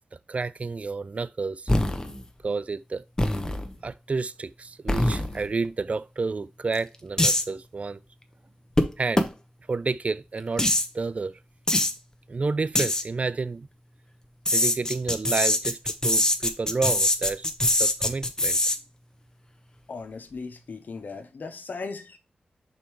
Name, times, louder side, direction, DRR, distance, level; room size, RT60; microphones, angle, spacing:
voice 1, 0.3-1.7 2.4-3.0 3.8-8.0 9.0-9.3 9.7-10.7 10.9-11.4 12.3-13.7 14.5-17.4 17.8-18.6, right 4 dB, 45° right, 0.3 m, -30 dB
sound 1, 1.7-2.3 3.2-3.7 4.9-5.5 6.7-6.8 7.2-7.4 8.8-8.9 9.2-9.3 10.6-10.9 11.7-11.9 12.8-13.0 14.5-18.8, left 1 dB, 20° left, 1.0 m, -23 dB
voice 2, 19.9-22.2, left 4 dB, 70° left, 0.9 m, -37 dB
5.3 x 4.4 x 4.6 m
cardioid pair, 45°, 3 cm